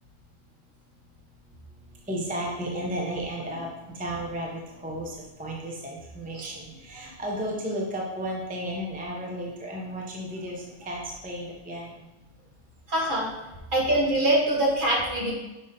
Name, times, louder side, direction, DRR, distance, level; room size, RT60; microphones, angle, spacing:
voice 1, 1.9-12.0, equal, 10° right, -2 dB, 0.7 m, -34 dB
voice 2, 12.9-13.3 13.7-15.3, right 1 dB, 40° right, -3 dB, 1.4 m, -24 dB
5.4 x 5.1 x 4.1 m, 1.0 s
omnidirectional pair, 1.3 m